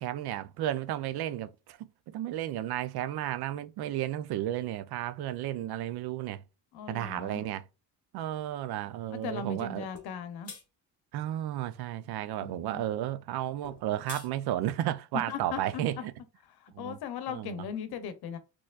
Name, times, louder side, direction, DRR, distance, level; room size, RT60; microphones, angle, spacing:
voice 1, 0.0-6.4 6.9-7.6 8.1-9.9 11.1-16.1 16.7-17.0 17.3-17.7, right 12 dB, 85° right, 0.5 m, -33 dB
voice 2, 6.7-7.4 9.1-10.5 12.4-12.8 15.3-15.6 16.6-18.4, left 6 dB, 85° left, 0.7 m, -38 dB
sound 1, 9.9-10.1 10.4-10.6 13.6-14.3, left 6 dB, 40° left, 1.0 m, -44 dB
4.2 x 2.9 x 2.4 m
cardioid pair, 135°, 37 cm